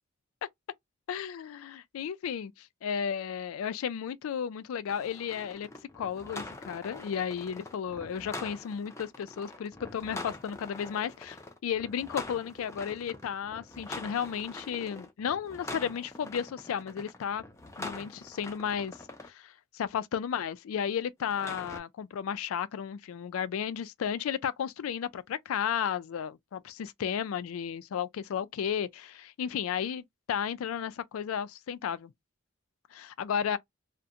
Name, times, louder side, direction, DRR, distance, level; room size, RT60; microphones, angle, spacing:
voice 1, 1.1-5.7 5.9-11.4 11.6-17.4 17.8-19.0 19.3-32.1 32.9-33.6, left 8 dB, 85° left, 0.3 m, -33 dB
sound 1, 4.9-19.3 21.2-21.8, left 2 dB, 15° left, 0.4 m, -44 dB
2.7 x 2.1 x 2.3 m
head